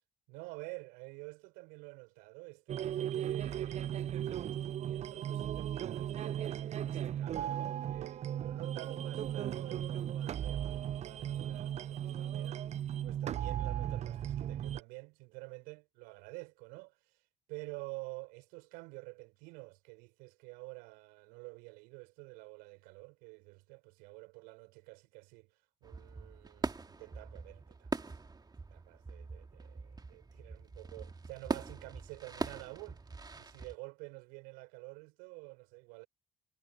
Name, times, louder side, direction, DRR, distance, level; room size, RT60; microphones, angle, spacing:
voice 1, 0.3-12.6 13.0-17.2 17.5-25.5 25.8-28.1 28.7-33.0 33.4-36.1, right 28 dB, 75° right, 6.1 m, -49 dB
sound 1, 2.7-14.8, right 10 dB, 45° right, 0.5 m, -36 dB
sound 2, 25.8-33.8, right 3 dB, 25° right, 2.0 m, -42 dB
figure-of-eight pair, 45°, 16 cm